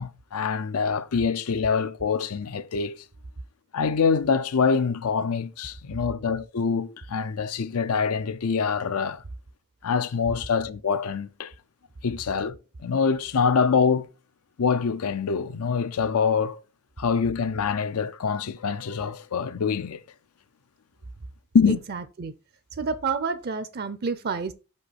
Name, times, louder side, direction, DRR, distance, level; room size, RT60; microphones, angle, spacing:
voice 1, 0.0-3.0 3.7-9.2 9.8-11.5 12.0-12.6 12.8-14.1 14.6-16.6 17.0-20.0 21.5-21.8, left 5 dB, 80° left, 0.5 m, -25 dB
voice 2, 21.7-22.3 22.7-24.5, right 5 dB, 45° right, 0.5 m, -29 dB
5.4 x 5.4 x 4.1 m
head